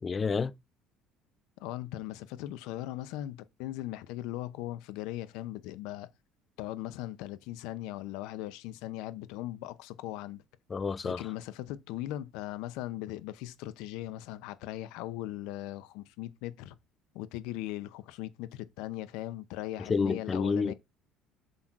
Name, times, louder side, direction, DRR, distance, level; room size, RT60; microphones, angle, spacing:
voice 1, 0.0-0.5 10.7-11.2 19.8-20.7, left 5 dB, 20° left, 0.4 m, -29 dB
voice 2, 1.6-6.1 6.6-10.4 11.0-16.8 17.1-20.7, left 15 dB, 80° left, 0.9 m, -39 dB
7.9 x 3.9 x 6.1 m
cardioid pair, 160°, 0 cm